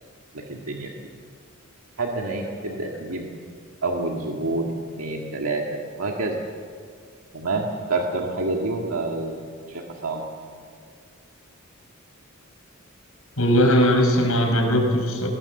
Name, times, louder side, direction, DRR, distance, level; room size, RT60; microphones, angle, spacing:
voice 1, 0.3-0.9 2.0-3.3 3.8-4.7 5.0-6.4 7.3-9.4 9.7-10.3, right 2 dB, 85° right, 0 dB, 1.9 m, -28 dB
voice 2, 13.4-15.3, equal, 85° left, 2 dB, 5.2 m, -19 dB
21.0 x 18.5 x 7.1 m, 2.1 s
head